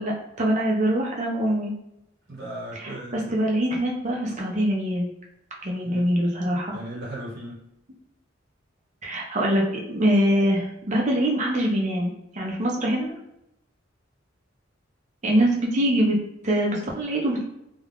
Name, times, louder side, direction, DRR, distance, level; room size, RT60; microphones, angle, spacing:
voice 1, 0.0-1.7 2.7-5.1 5.6-6.8 9.0-9.6 9.9-13.1 15.2-16.2 16.4-17.4, right 1 dB, 35° right, -1 dB, 0.6 m, -24 dB
voice 2, 2.3-3.5 5.8-6.1 6.7-7.6, right 1 dB, 60° right, -5 dB, 1.1 m, -37 dB
2.3 x 2.3 x 3.4 m, 0.82 s
head